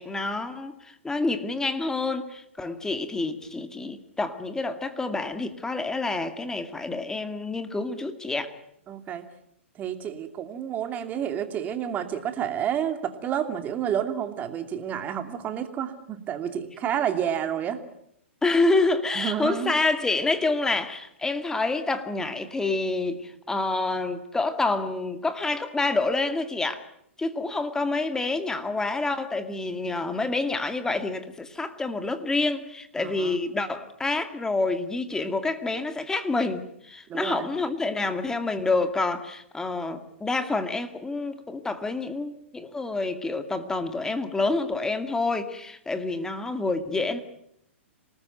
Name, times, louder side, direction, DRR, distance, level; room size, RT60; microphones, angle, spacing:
voice 1, 0.0-8.5 18.4-26.8 27.2-47.2, left 3 dB, 10° left, 9 dB, 2.2 m, -28 dB
voice 2, 8.9-9.3 9.7-17.8 19.1-19.7 33.0-33.4 37.1-37.5, right 9 dB, 25° right, 7 dB, 2.7 m, -30 dB
27.0 x 19.5 x 9.2 m, 0.75 s
hypercardioid pair, 130°, 7 cm